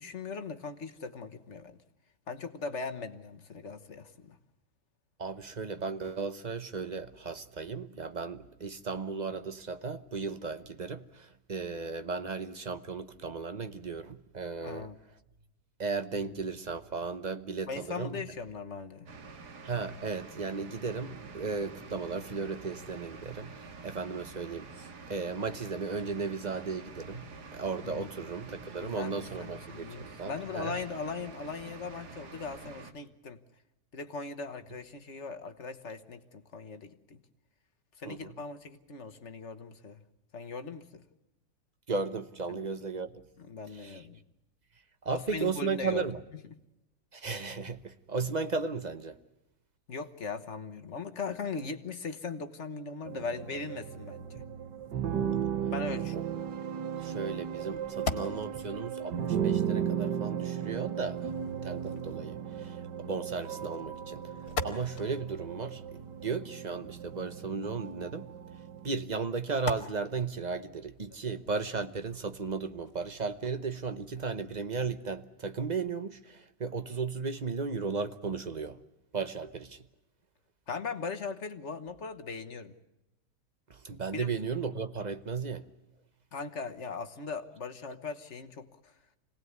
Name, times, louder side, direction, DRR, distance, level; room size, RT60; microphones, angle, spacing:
voice 1, 0.0-1.8 2.3-4.4 14.6-15.0 17.7-19.1 27.8-28.1 28.6-33.4 33.9-37.2 38.0-40.0 40.3-41.0 42.5-42.7 43.4-44.2 45.1-46.0 49.9-54.4 55.7-56.3 80.7-82.7 84.1-84.3 86.3-88.9, left 4 dB, 45° left, 1.5 m, -39 dB
voice 2, 5.2-14.9 15.8-18.2 19.6-27.3 27.5-30.7 38.0-38.3 41.9-43.2 43.8-44.0 45.0-46.2 47.1-49.2 56.1-56.2 57.0-61.3 61.6-64.2 64.6-68.3 68.8-78.8 79.1-79.8 83.7-85.7, right 4 dB, 35° right, 0.8 m, -35 dB
sound 1, 19.1-32.9, right 4 dB, 70° right, 2.2 m, -48 dB
sound 2, 53.1-68.9, right 9 dB, 90° right, 1.7 m, -35 dB
sound 3, 57.6-75.1, left 4 dB, 65° left, 2.2 m, -45 dB
26.0 x 19.0 x 9.5 m
omnidirectional pair, 1.8 m